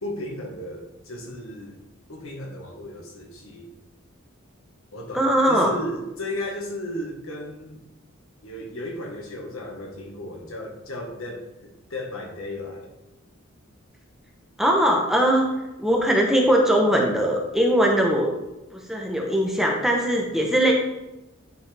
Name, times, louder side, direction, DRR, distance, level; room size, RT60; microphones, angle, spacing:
voice 1, 0.0-3.7 4.9-7.8 8.4-12.9, left 1 dB, 75° left, 1 dB, 1.5 m, -35 dB
voice 2, 5.1-5.7 14.6-15.5 15.8-18.3 18.7-20.7, equal, ahead, 0 dB, 0.9 m, -20 dB
10.0 x 5.4 x 3.4 m, 0.99 s
head